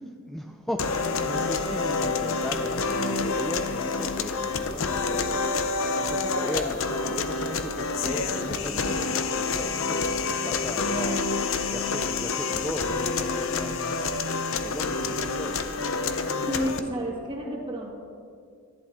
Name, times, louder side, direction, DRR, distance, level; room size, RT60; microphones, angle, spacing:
voice 1, 0.3-14.1 14.5-15.6, equal, ahead, 4 dB, 0.3 m, -37 dB
sound 1, 0.8-16.8, left 4 dB, 70° left, 0.7 m, -28 dB
voice 2, 16.5-17.9, right 1 dB, 25° right, -2 dB, 2.0 m, -32 dB
13.5 x 11.0 x 3.5 m, 2.3 s
head